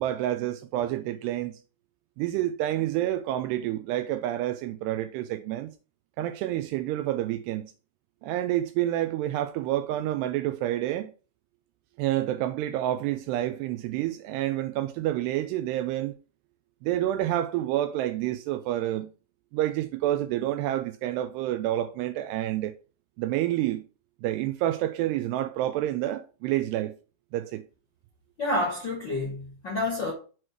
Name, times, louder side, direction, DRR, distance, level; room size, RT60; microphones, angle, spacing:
voice 1, 0.0-1.6 2.2-5.7 6.2-7.7 8.2-11.1 12.0-16.2 16.8-19.1 19.5-22.8 23.2-23.8 24.2-27.0 27.3-27.7, right 13 dB, 85° right, 2.5 m, -28 dB
voice 2, 28.4-30.1, left 2 dB, 50° left, 1.3 m, -29 dB
7.9 x 3.2 x 5.9 m
omnidirectional pair, 5.0 m